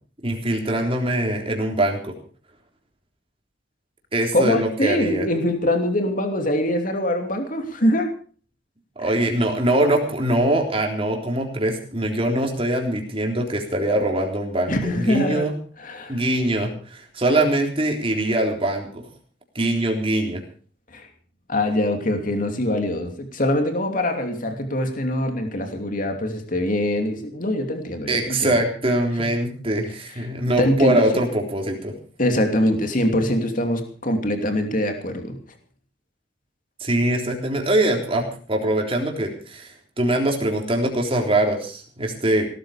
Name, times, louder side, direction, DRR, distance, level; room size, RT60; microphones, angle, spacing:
voice 1, 0.2-2.1 4.1-5.3 9.0-15.5 16.1-19.0 19.6-20.4 28.1-31.9 36.8-42.5, right 1 dB, 30° right, 2 dB, 3.7 m, -23 dB
voice 2, 4.3-8.1 9.1-9.2 14.7-16.2 20.9-21.1 21.5-28.5 29.2-29.3 30.2-30.3 30.6-31.1 32.2-35.4, left 1 dB, 45° left, 5 dB, 2.8 m, -23 dB
18.0 x 13.5 x 5.1 m, 0.42 s
head